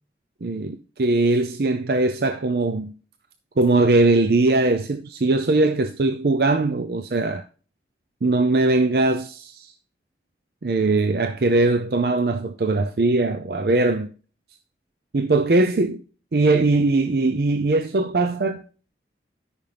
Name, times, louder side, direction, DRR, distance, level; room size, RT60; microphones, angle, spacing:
voice 1, 0.4-2.9 3.6-7.4 8.2-9.7 10.6-14.1 15.1-16.0 16.3-18.6, right 2 dB, 60° right, 0.5 m, -20 dB
13.0 x 5.7 x 3.4 m
head